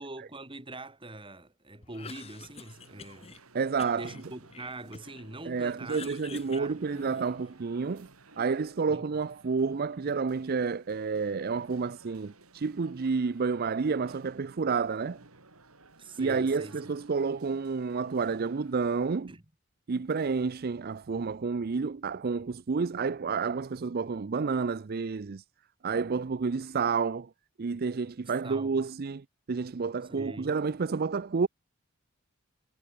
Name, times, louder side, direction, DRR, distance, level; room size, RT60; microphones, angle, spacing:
voice 1, 0.0-3.4 3.9-6.9 8.9-9.0 16.0-16.8 19.3-19.4 28.4-28.8 30.1-30.5, right 2 dB, 25° right, 3.2 m, -43 dB
Cough, 1.8-3.4 3.8-5.3 5.6-7.5, left 5 dB, 30° left, 0.7 m, -48 dB
sound 1, 2.0-19.3, right 2 dB, 90° right, 4.8 m, -56 dB
voice 2, 3.5-4.1 5.5-8.1 8.4-15.3 16.2-19.3 19.9-25.4 25.8-27.3 27.6-31.5, right 5 dB, 45° right, 0.5 m, -30 dB
head